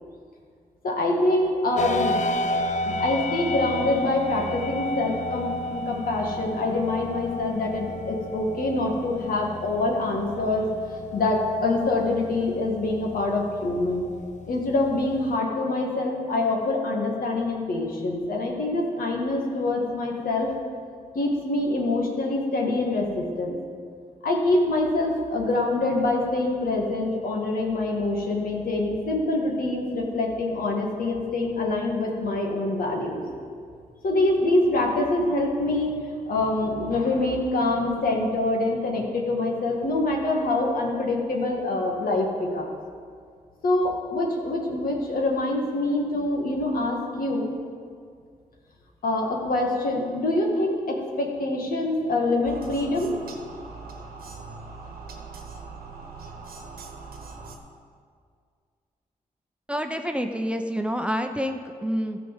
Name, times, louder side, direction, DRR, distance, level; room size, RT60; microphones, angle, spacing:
voice 1, 0.8-2.1 2.8-10.7 11.1-14.0 14.5-20.5 21.1-23.6 24.2-33.2 34.0-42.7 43.6-47.5 49.0-53.1, left 2 dB, 75° left, 0 dB, 2.0 m, -25 dB
sound 1, 1.8-15.4, left 1 dB, 55° left, 0.6 m, -32 dB
sound 2, 52.4-57.6, right 4 dB, 85° right, 1.2 m, -41 dB
voice 2, 59.7-62.2, equal, 5° right, 5 dB, 0.9 m, -28 dB
13.5 x 5.1 x 7.3 m, 2.1 s
cardioid pair, 50°, 15 cm